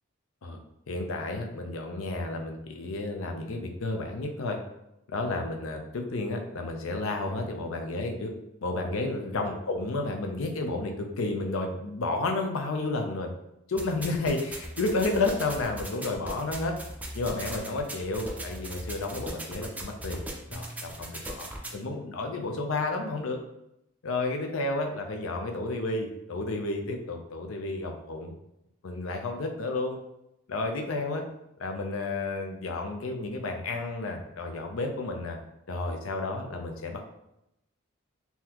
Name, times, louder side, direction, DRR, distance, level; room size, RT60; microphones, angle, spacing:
voice 1, 0.9-4.6 5.1-8.3 8.6-13.3 13.7-16.7 17.1-20.2 20.5-21.5 21.7-23.4 24.0-28.3 28.8-30.0 30.5-31.2 31.6-35.4 35.7-37.0, left 2 dB, 85° left, 3 dB, 0.5 m, -31 dB
sound 1, 13.8-21.8, right 1 dB, 10° right, 0.4 m, -39 dB
3.8 x 2.7 x 2.9 m, 0.85 s
head